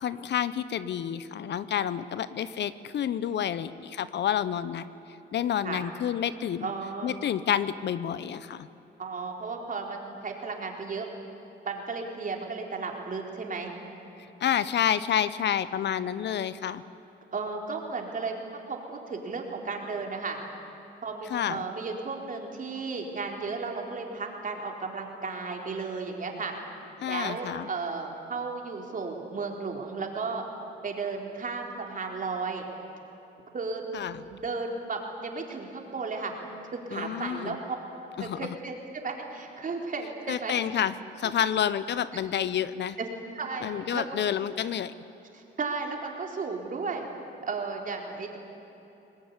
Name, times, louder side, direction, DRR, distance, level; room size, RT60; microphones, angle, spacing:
voice 1, 0.0-4.9 5.3-6.7 7.0-8.7 14.4-16.8 21.3-21.6 27.0-27.7 33.9-34.2 36.9-37.6 38.2-38.6 40.3-43.0 43.6-44.9, left 9 dB, 60° left, 15 dB, 0.9 m, -29 dB
voice 2, 6.6-7.2 9.0-11.1 11.6-13.7 17.3-18.3 18.7-20.4 21.0-26.5 27.0-30.4 30.8-32.6 33.5-33.8 34.3-36.3 36.7-37.8 38.2-40.5 41.2-41.3 43.0-43.1 43.3-44.2 45.3-47.1 47.4-48.4, right 4 dB, 40° right, 1 dB, 4.2 m, -34 dB
24.0 x 20.0 x 9.9 m, 3.0 s
cardioid pair, 90°, 20 cm